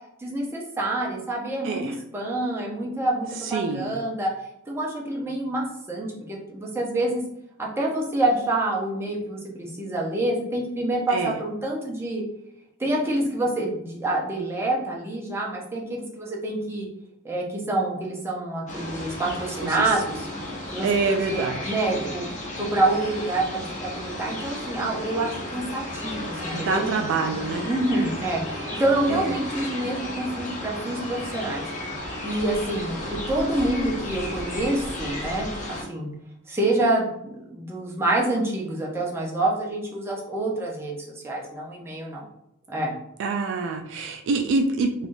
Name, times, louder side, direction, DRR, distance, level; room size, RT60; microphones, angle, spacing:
voice 1, 0.2-4.3 4.7-7.2 7.6-12.2 12.8-16.9 17.2-20.3 20.7-22.3 22.6-26.9 27.6-31.6 32.2-35.5 35.9-36.1 36.5-42.3 42.7-42.9, right 2 dB, 10° right, -3 dB, 0.6 m, -27 dB
voice 2, 1.6-1.9 3.4-3.9 11.1-11.3 19.6-19.9 20.8-21.6 26.5-27.6 29.1-29.3 43.2-44.9, right 4 dB, 60° right, 5 dB, 0.3 m, -26 dB
sound 1, 18.7-35.8, left 1 dB, 35° left, 0.7 m, -34 dB
3.3 x 2.3 x 2.6 m, 0.79 s
head